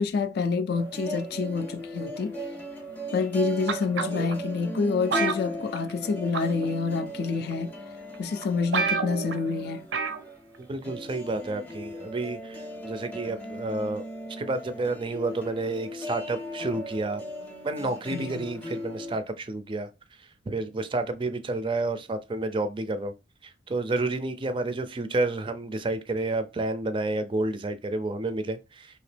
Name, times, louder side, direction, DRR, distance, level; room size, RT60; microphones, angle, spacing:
voice 1, 0.0-2.4 3.1-7.7 8.2-9.9 18.1-18.5, left 5 dB, 60° left, 0.3 m, -28 dB
sound 1, 0.7-19.2, equal, 10° left, 0.6 m, -38 dB
sound 2, 3.7-4.3 5.1-6.1 6.3-6.7 7.5-7.6 8.1-8.2 8.4-8.5 8.7-9.4 9.9-10.2 10.5-10.6, right 5 dB, 85° right, 0.5 m, -28 dB
voice 2, 10.6-14.1 14.4-17.2 17.6-19.9 20.2-23.1 23.4-29.0, right 2 dB, 25° right, 0.4 m, -30 dB
2.9 x 2.8 x 3.2 m
head